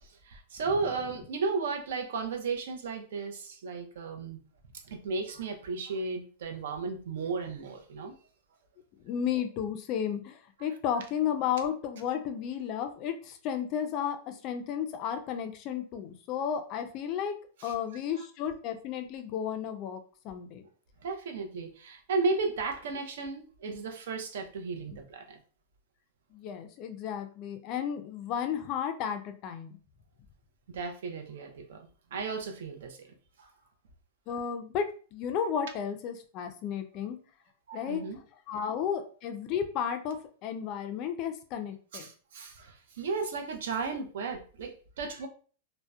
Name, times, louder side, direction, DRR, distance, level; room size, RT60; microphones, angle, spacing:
voice 1, 0.0-4.4 4.8-8.1 17.6-17.7 21.0-25.4 30.7-33.1 33.4-33.5 37.7-38.2 41.9-45.3, right 4 dB, 75° right, 4 dB, 0.5 m, -34 dB
voice 2, 9.0-17.4 17.6-20.6 24.9-25.0 26.3-29.7 34.3-34.9 35.1-37.2 37.7-38.0 38.5-42.1, left 8 dB, 35° left, 6 dB, 0.3 m, -33 dB
2.7 x 2.0 x 2.2 m, 0.41 s
supercardioid pair, 160°, 0 cm